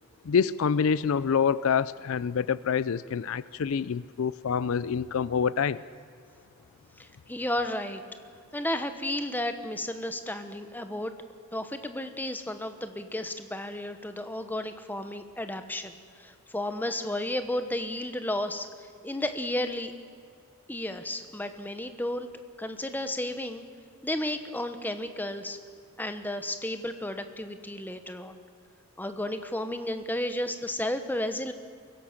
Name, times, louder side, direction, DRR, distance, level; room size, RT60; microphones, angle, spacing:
voice 1, 0.3-5.8, left 6 dB, 65° left, 18 dB, 0.4 m, -26 dB
voice 2, 7.0-8.0 8.5-11.1 11.5-15.9 16.2-19.9 20.7-22.3 22.6-23.6 24.0-25.6 26.0-28.4 29.0-31.5, left 1 dB, 10° left, 8 dB, 1.0 m, -33 dB
24.0 x 16.5 x 7.3 m, 2.4 s
head